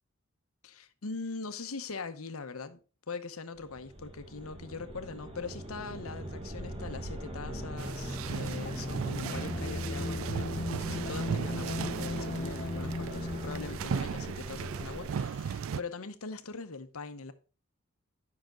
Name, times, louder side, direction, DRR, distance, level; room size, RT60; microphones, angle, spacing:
voice 1, 0.6-2.8 3.1-17.3, left 4 dB, 75° left, 0.9 m, -41 dB
sound 1, 3.6-15.1, right 1 dB, 25° right, 1.2 m, -41 dB
sound 2, 7.4-13.7, left 2 dB, 35° left, 0.7 m, -38 dB
sound 3, 7.8-15.8, right 7 dB, 70° right, 0.3 m, -37 dB
10.5 x 5.9 x 3.8 m
head